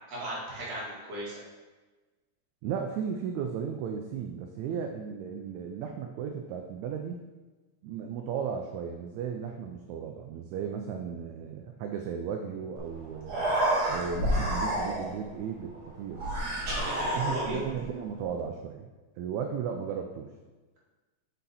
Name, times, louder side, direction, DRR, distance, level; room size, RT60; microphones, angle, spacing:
voice 1, 0.1-1.3 16.8-17.6, right 1 dB, 60° right, -6 dB, 2.9 m, -36 dB
voice 2, 2.6-7.2 7.8-13.4 13.9-16.3 17.1-18.9 19.2-20.3, right 7 dB, 80° right, 4 dB, 1.9 m, -35 dB
Human voice, 12.8-12.9 13.2-15.2 16.1-17.8, right 1 dB, 40° right, 1.7 m, -29 dB
6.2 x 5.4 x 4.1 m, 1.2 s
omnidirectional pair, 3.3 m